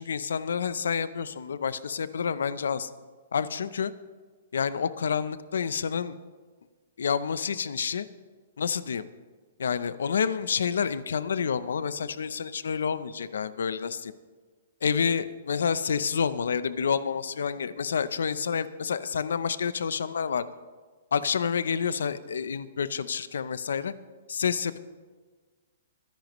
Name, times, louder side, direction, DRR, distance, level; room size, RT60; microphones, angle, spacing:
voice 1, 0.0-2.9 3.3-3.9 4.5-6.2 7.0-8.1 8.6-9.0 9.6-14.1 14.8-20.5 21.1-23.9 24.3-24.8, left 6 dB, 90° left, 15 dB, 0.6 m, -28 dB
23.5 x 10.5 x 3.1 m, 1.4 s
hypercardioid pair, 165°, 0 cm